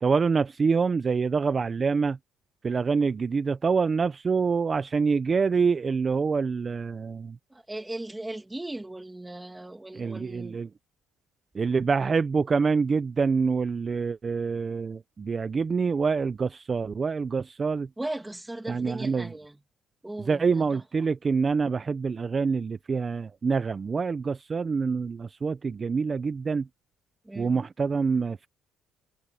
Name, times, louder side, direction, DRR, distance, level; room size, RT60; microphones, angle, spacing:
voice 1, 0.0-2.2 2.6-7.4 9.9-10.7 11.5-17.9 18.7-19.3 20.2-26.7 27.3-28.5, right 5 dB, 25° right, 0.5 m, -26 dB
voice 2, 7.5-10.6 18.0-19.6 20.0-20.8 27.3-27.6, right 1 dB, 5° right, 2.3 m, -38 dB
cardioid pair, 155°, 0 cm